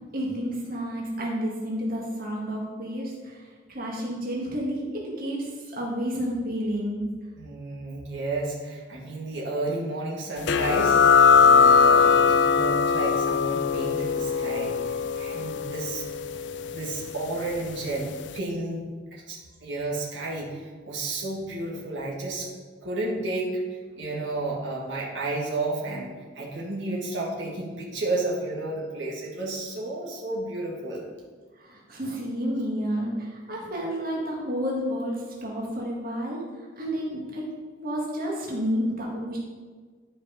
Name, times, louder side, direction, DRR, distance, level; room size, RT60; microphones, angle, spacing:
voice 1, 0.1-3.4 3.7-7.0 31.6-37.5 37.8-39.4, equal, 50° right, -3 dB, 1.8 m, -30 dB
voice 2, 7.4-16.0 16.7-18.1 18.3-18.8 19.1-22.5 22.8-26.1 26.4-31.0, right 2 dB, 75° right, -3 dB, 1.9 m, -32 dB
sound 1, 10.5-17.7, left 5 dB, 70° left, 0.5 m, -21 dB
11.5 x 5.3 x 5.1 m, 1.5 s
head